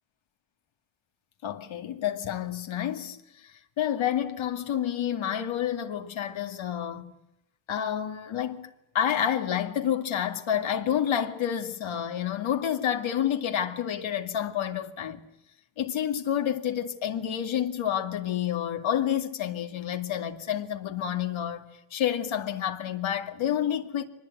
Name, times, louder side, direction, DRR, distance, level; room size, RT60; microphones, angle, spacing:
voice 1, 1.4-3.2 3.8-7.1 7.7-15.2 15.8-24.0, left 10 dB, 80° left, 2.3 m, -29 dB
24.5 x 20.0 x 9.2 m
wide cardioid pair, 125°, 46 cm